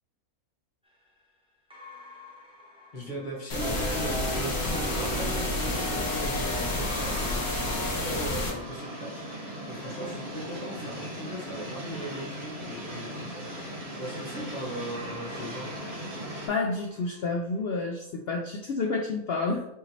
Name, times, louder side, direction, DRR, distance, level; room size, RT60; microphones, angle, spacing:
sound 1, 0.8-4.3 6.8-12.2 13.4-18.0, equal, 5° right, 0.6 m, -49 dB
voice 1, 2.9-13.5 13.9-15.8, right 1 dB, 35° left, -2 dB, 1.1 m, -38 dB
sound 2, 3.5-8.5, left 2 dB, 85° left, 1.7 m, -30 dB
sound 3, 3.6-16.5, equal, 45° right, 1.5 m, -37 dB
voice 2, 16.5-19.6, left 3 dB, 70° left, 1 dB, 0.6 m, -29 dB
5.7 x 3.1 x 2.7 m, 0.78 s
omnidirectional pair, 1.5 m